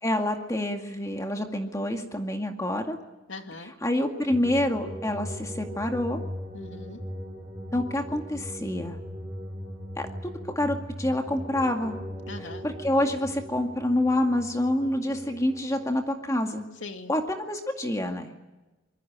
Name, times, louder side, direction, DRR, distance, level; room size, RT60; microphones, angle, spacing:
voice 1, 0.0-3.0 3.8-6.2 7.7-9.0 10.0-10.1 10.5-12.0 12.6-16.6 17.1-18.3, left 1 dB, 15° left, 4 dB, 2.1 m, -27 dB
voice 2, 3.3-3.7 6.5-7.0 12.3-12.7 16.8-17.1, left 3 dB, 70° left, 5 dB, 2.6 m, -40 dB
sound 1, 4.3-16.0, equal, 15° right, 6.7 m, -39 dB
26.5 x 22.5 x 8.8 m, 1.1 s
head